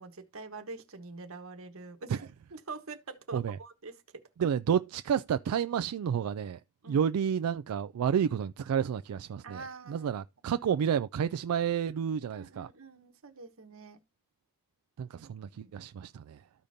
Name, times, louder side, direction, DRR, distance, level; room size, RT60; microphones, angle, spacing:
voice 1, 0.0-2.2 2.5-4.2 6.8-7.0 9.4-10.2 12.3-14.0 15.1-15.2 15.5-15.7, right 3 dB, 65° right, 1.2 m, -45 dB
voice 2, 4.4-6.6 6.9-12.7 15.0-16.4, right 8 dB, 85° right, 0.3 m, -30 dB
13.5 x 5.1 x 2.7 m
head